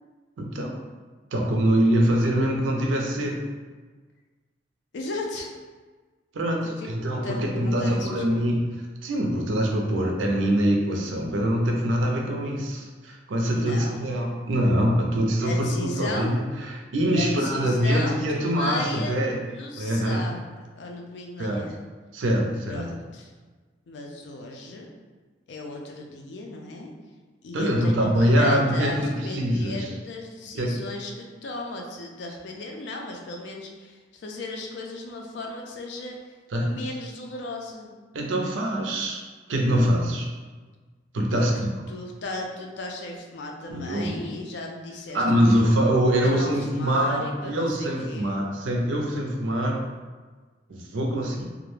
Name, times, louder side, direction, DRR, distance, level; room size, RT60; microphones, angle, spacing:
voice 1, 0.4-0.8 1.3-3.4 6.3-8.6 9.0-19.4 19.8-20.2 21.4-21.6 22.1-22.9 27.5-29.9 30.6-30.8 36.5-36.7 38.1-39.2 39.5-40.3 41.1-41.7 43.7-44.2 45.1-49.9 50.7-51.4, equal, 85° right, 0 dB, 0.5 m, -24 dB
voice 2, 4.9-5.5 6.7-6.9 7.2-8.4 13.5-14.0 15.1-16.4 17.1-19.2 19.5-21.7 22.6-23.3 23.9-24.9 25.5-26.9 27.4-36.2 36.6-37.9 38.3-38.6 41.4-41.5 41.9-45.7 46.2-48.4, left 2 dB, 65° left, 1 dB, 0.4 m, -36 dB
2.3 x 2.1 x 3.1 m, 1.4 s
head